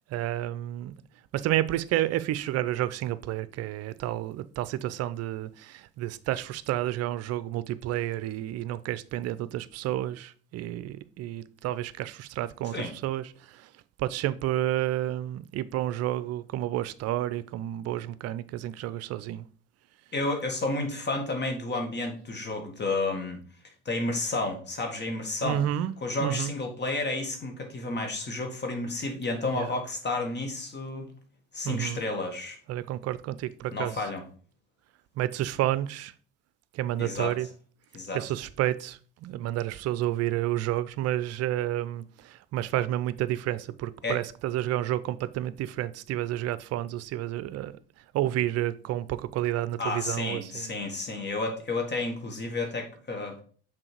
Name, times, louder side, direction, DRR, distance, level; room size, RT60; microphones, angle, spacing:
voice 1, 0.1-0.9 1.3-13.7 14.0-19.5 25.4-26.5 29.5-29.7 31.6-32.0 32.7-33.9 35.2-36.1 36.7-37.5 38.1-47.7 48.1-50.7, right 13 dB, 50° right, 0.6 m, -30 dB
voice 2, 20.1-23.4 23.9-25.6 26.0-31.1 31.5-32.6 33.7-34.2 37.0-37.3 37.9-38.2 44.0-44.2 49.8-53.4, left 2 dB, 35° left, 1.9 m, -31 dB
6.2 x 4.5 x 4.5 m
hypercardioid pair, 60°, 32 cm